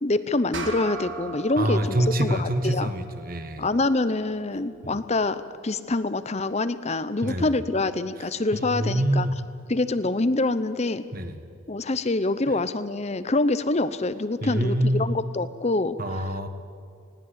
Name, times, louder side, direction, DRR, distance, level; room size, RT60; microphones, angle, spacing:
voice 1, 0.0-2.9 3.6-9.3 9.7-11.0 11.7-16.2, left 2 dB, 30° left, 13 dB, 0.7 m, -26 dB
sound 1, 0.5-5.3, right 3 dB, 60° right, 2.1 m, -40 dB
voice 2, 1.6-3.7 4.8-5.0 7.2-7.6 8.5-9.4 11.1-11.4 14.4-15.1 16.0-16.5, right 1 dB, 45° right, 8 dB, 1.5 m, -26 dB
20.0 x 18.0 x 8.2 m, 2.5 s
head